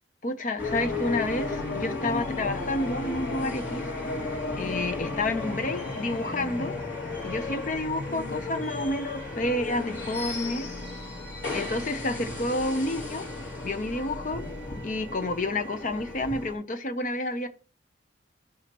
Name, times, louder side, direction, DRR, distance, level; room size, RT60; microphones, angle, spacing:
voice 1, 0.2-3.9 4.6-6.7 7.2-10.7 11.5-13.3 13.6-14.5 14.8-17.5, left 2 dB, 40° left, 0.7 m, -30 dB
sound 1, 0.6-16.5, left 2 dB, 80° left, 3.8 m, -34 dB
13.0 x 4.8 x 3.0 m
head